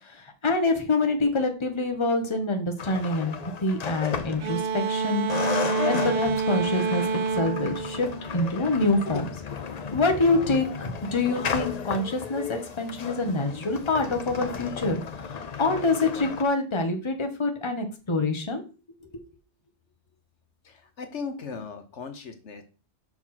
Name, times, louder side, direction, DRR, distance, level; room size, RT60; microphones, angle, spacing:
voice 1, 0.0-5.3 5.8-7.0 7.4-8.1 8.3-9.3 9.9-15.0 15.3-18.6, left 2 dB, 25° left, 5 dB, 1.2 m, -26 dB
sound 1, 2.8-5.0 5.3-16.4, left 6 dB, 45° left, 0.6 m, -34 dB
sound 2, 4.4-8.9, right 4 dB, 55° right, 0.8 m, -28 dB
voice 2, 20.6-22.6, left 5 dB, 70° left, 7 dB, 1.3 m, -37 dB
6.0 x 4.8 x 5.7 m, 0.34 s
omnidirectional pair, 1.3 m